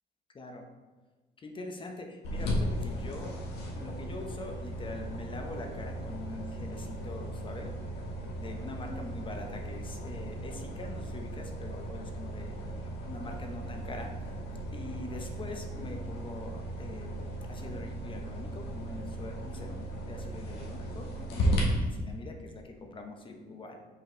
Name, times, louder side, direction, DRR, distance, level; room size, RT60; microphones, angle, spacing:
voice 1, 1.4-3.4 3.7-7.8 8.4-12.5 13.1-14.1 14.7-17.1 17.5-23.8, left 2 dB, 30° left, 4 dB, 1.0 m, -43 dB
sound 1, 2.2-21.6, equal, 85° left, 1.6 m, -36 dB
5.8 x 5.1 x 4.0 m, 1.3 s
cardioid pair, 110°, 17 cm